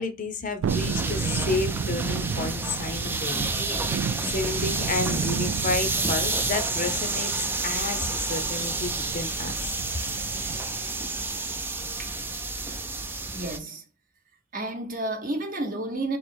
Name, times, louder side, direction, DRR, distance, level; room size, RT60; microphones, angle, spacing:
voice 1, 0.0-9.5, left 3 dB, 40° left, 0.6 m, -31 dB
Thunderstorm, 0.6-10.8 11.2-11.3, right 7 dB, 90° right, 0.3 m, -33 dB
sound 1, 0.7-13.6, right 3 dB, 10° right, 0.3 m, -30 dB
voice 2, 13.3-13.8 14.5-16.2, right 2 dB, 45° right, 0.9 m, -31 dB
3.0 x 2.9 x 4.3 m
head